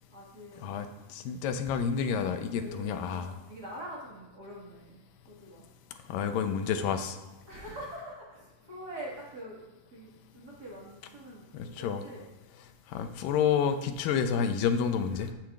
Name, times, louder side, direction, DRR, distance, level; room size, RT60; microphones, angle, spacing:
voice 1, 0.1-1.1 2.5-5.6 7.5-9.6 9.9-12.3 15.1-15.3, right 1 dB, 45° right, -5 dB, 1.3 m, -45 dB
voice 2, 0.6-3.3 6.1-7.2 11.5-12.0 12.9-15.3, left 7 dB, 80° left, 8 dB, 2.2 m, -29 dB
15.0 x 7.5 x 2.4 m, 1.2 s
omnidirectional pair, 4.2 m